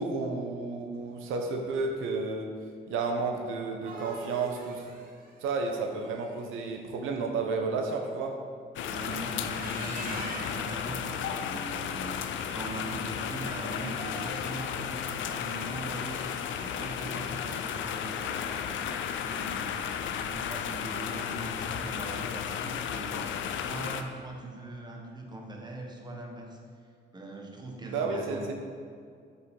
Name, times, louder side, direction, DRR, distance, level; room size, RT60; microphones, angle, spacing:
voice 1, 0.0-2.5 2.9-4.8 5.4-8.3 27.8-28.5, right 4 dB, 90° right, 3 dB, 0.8 m, -31 dB
sound 1, 3.5-6.6 9.3-10.8 13.8-14.7, right 2 dB, 45° right, 1.6 m, -44 dB
sound 2, 8.8-24.0, left 8 dB, 75° left, 0.5 m, -34 dB
voice 2, 8.9-16.2 16.6-19.9 20.2-26.6 27.1-28.5, right 1 dB, 20° right, 1 dB, 1.3 m, -41 dB
7.3 x 7.0 x 3.8 m, 2.2 s
cardioid pair, 90°, 20 cm